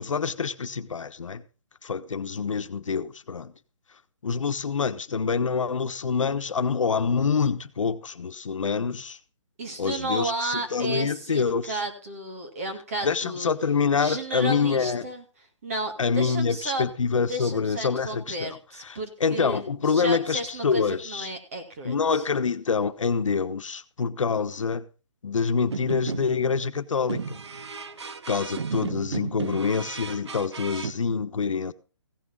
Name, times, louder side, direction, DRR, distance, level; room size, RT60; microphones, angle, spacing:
voice 1, 0.0-1.4 1.8-3.5 4.2-9.2 9.8-11.8 13.0-15.1 16.0-18.6 18.9-21.3 21.8-24.8 25.2-27.4 28.3-31.7, left 5 dB, 90° left, 1.2 m, -26 dB
voice 2, 9.6-13.5 14.0-15.2 15.6-16.9 17.3-22.2 27.1-27.2, right 2 dB, 30° right, 2.0 m, -33 dB
sound 1, 25.6-26.5 27.1-30.9, right 5 dB, 60° right, 1.0 m, -34 dB
16.0 x 6.3 x 5.4 m
hypercardioid pair, 180°, 16 cm